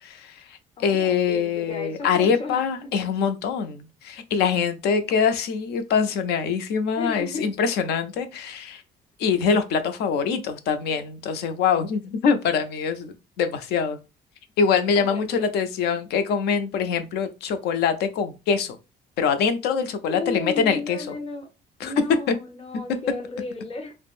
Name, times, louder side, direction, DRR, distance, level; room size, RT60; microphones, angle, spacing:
voice 1, 0.0-8.8 9.2-14.0 14.6-18.8 19.2-21.1 21.8-21.9 22.3-22.4, left 6 dB, 75° left, 0.5 m, -24 dB
voice 2, 0.8-2.6 7.0-7.5 14.9-15.4 20.1-21.5 21.8-23.9, left 3 dB, 35° left, 1.0 m, -34 dB
3.4 x 2.0 x 2.4 m
cardioid pair, 110°, 17 cm